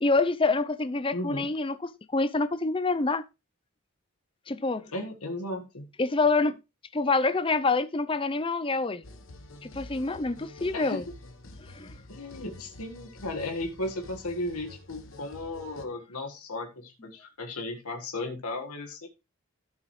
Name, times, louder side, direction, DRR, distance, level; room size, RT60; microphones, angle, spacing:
voice 1, 0.0-3.2 4.5-4.8 6.0-6.6 6.9-9.0 9.6-11.0 11.7-12.0, left 3 dB, 25° left, 0.6 m, -26 dB
voice 2, 1.1-1.5 4.9-5.9 10.7-11.0 12.1-19.1, left 2 dB, 90° left, 1.7 m, -35 dB
sound 1, 9.0-15.9, left 2 dB, 60° left, 1.2 m, -48 dB
13.0 x 7.2 x 3.2 m
head